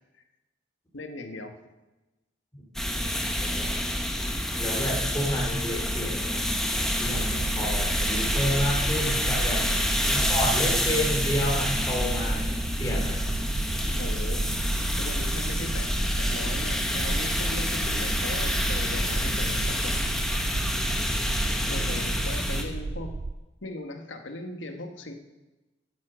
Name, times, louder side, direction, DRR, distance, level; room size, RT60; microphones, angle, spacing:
voice 1, 0.9-1.6 9.5-10.3 14.0-14.5 15.0-20.0 21.7-23.1 23.6-25.1, left 2 dB, 85° left, 6 dB, 1.5 m, -39 dB
sound 1, 2.7-22.6, left 1 dB, 5° left, 1.2 m, -28 dB
voice 2, 3.0-4.0 4.6-6.5 7.0-9.6 10.1-13.2 20.9-22.0, equal, 20° left, -2 dB, 3.1 m, -31 dB
sound 2, 7.1-23.3, right 3 dB, 40° right, 0.4 m, -33 dB
12.5 x 9.7 x 6.3 m, 1.1 s
head